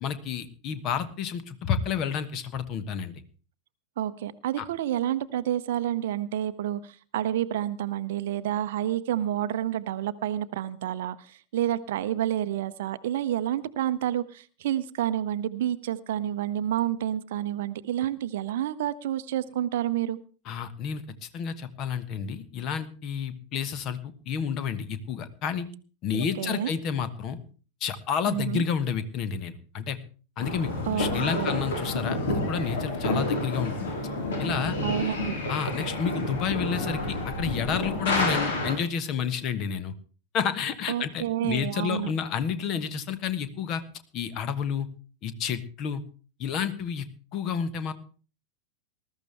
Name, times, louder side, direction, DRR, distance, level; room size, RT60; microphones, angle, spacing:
voice 1, 0.0-3.1 4.6-4.7 20.4-24.0 24.3-25.7 26.0-27.4 27.8-30.0 30.4-33.9 34.4-34.8 35.5-39.9 40.3-43.8 44.1-44.9 45.2-46.0 46.4-47.1 47.3-47.9, left 7 dB, 35° left, 13 dB, 1.3 m, -30 dB
voice 2, 4.0-20.2 26.1-26.7 28.3-28.7 30.9-31.6 34.8-35.4 40.9-42.1, right 11 dB, 55° right, 13 dB, 0.7 m, -29 dB
sound 1, 30.4-38.7, left 2 dB, 60° left, 4.2 m, -29 dB
20.0 x 13.0 x 3.4 m, 0.38 s
figure-of-eight pair, 90°, 0 cm